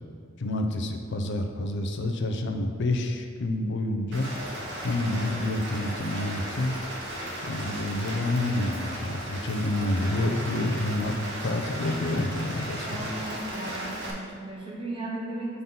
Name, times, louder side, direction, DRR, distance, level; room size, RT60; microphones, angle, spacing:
voice 1, 0.4-4.3 4.8-6.8 7.4-11.1 11.4-13.1, left 1 dB, 60° left, 4 dB, 0.6 m, -28 dB
Rain, 4.1-14.1, equal, 60° right, 1.1 m, -36 dB
voice 2, 12.9-15.6, right 1 dB, 25° right, -4 dB, 1.0 m, -36 dB
5.4 x 3.9 x 5.8 m, 2.2 s
head